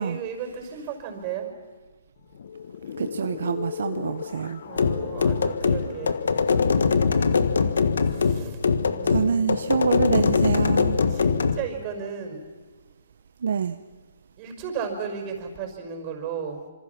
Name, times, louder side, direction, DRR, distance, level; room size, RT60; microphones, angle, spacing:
voice 1, 0.0-1.6 4.6-6.3 8.0-8.6 8.9-9.6 11.1-12.5 14.4-16.7, right 6 dB, 35° right, 4 dB, 5.3 m, -34 dB
sound 1, 2.2-10.9, left 7 dB, 65° left, 1.1 m, -38 dB
voice 2, 3.0-4.6 9.0-11.0 13.4-13.8, right 6 dB, 70° right, 10 dB, 0.8 m, -26 dB
sound 2, 4.8-11.6, left 5 dB, 80° left, 1.5 m, -22 dB
26.0 x 26.0 x 6.0 m, 1.3 s
hypercardioid pair, 140°, 0 cm